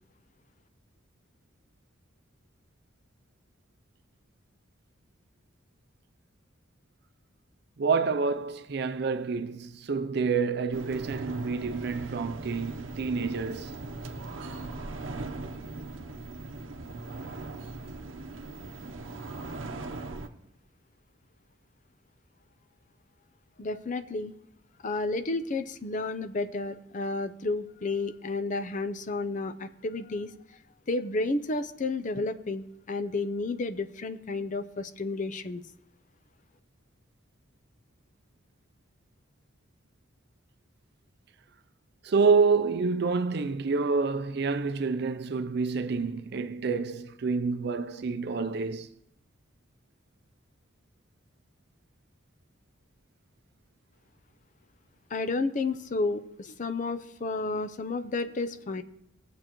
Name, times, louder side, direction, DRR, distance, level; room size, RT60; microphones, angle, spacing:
voice 1, 7.8-13.7 42.0-48.9, right 4 dB, 55° right, 0.5 m, -28 dB
sound 1, 10.7-20.3, right 2 dB, 80° right, 0.8 m, -39 dB
voice 2, 23.6-24.3 24.8-30.3 30.9-35.6 55.1-58.8, left 3 dB, 40° left, 0.5 m, -31 dB
18.5 x 7.6 x 3.0 m
head